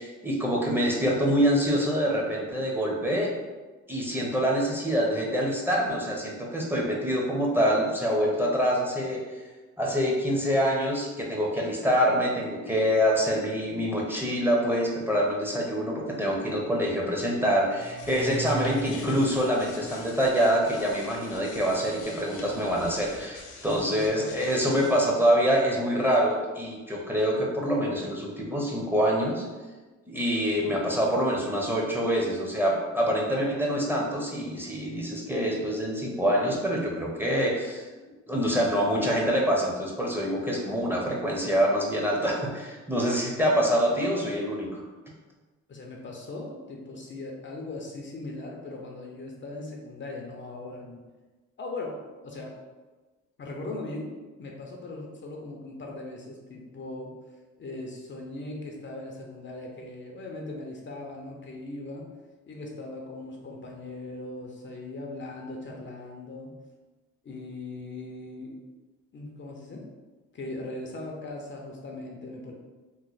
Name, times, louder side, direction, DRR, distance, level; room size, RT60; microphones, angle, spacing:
voice 1, 0.0-3.3 3.9-9.4 9.8-29.4 30.1-37.9 38.3-44.8, equal, 5° right, -3 dB, 0.7 m, -25 dB
sound 1, 17.6-25.1, equal, 80° left, 0.7 m, -41 dB
voice 2, 23.7-24.6 45.7-51.0 51.6-52.5 53.4-54.1 54.4-57.1 57.6-62.1 62.5-66.5 67.2-68.6 69.1-69.9 70.3-72.5, left 2 dB, 40° left, 0 dB, 0.6 m, -39 dB
3.0 x 2.0 x 3.9 m, 1.2 s
cardioid pair, 90°, 30 cm